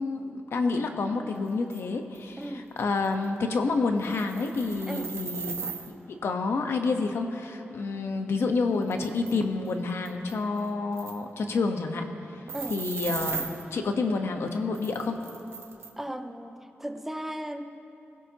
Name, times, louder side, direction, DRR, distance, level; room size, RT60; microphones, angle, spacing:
voice 1, 0.0-2.4 2.8-5.5 6.1-12.1 12.7-15.2, left 3 dB, 75° left, 4 dB, 1.2 m, -28 dB
sound 1, 1.7-1.8 2.1-2.2 2.8-2.9 3.0-3.2 4.0-5.9 8.3-8.4 8.8-9.3 9.7-9.8 10.1-10.7 11.0-11.2 12.5-13.6 14.7-15.9, right 5 dB, 75° right, 1.1 m, -37 dB
voice 2, 2.4-2.7 4.9-5.2 12.5-12.8 16.0-17.6, right 1 dB, 5° right, 6 dB, 0.6 m, -36 dB
25.0 x 16.5 x 3.0 m, 2.9 s
wide cardioid pair, 155°, 4 cm